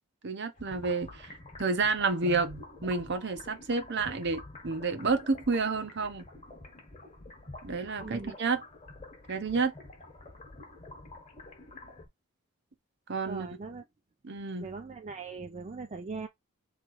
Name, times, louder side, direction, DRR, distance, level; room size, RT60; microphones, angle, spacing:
voice 1, 0.2-1.3 1.6-6.2 7.6-8.6 9.3-9.7 13.1-13.5 14.2-14.7, right 4 dB, 50° right, 0.8 m, -30 dB
sound 1, 0.6-12.1, left 2 dB, 30° left, 1.2 m, -48 dB
voice 2, 8.0-8.4 13.3-13.8 14.6-16.3, right 4 dB, 30° right, 0.4 m, -40 dB
3.6 x 3.3 x 4.5 m
head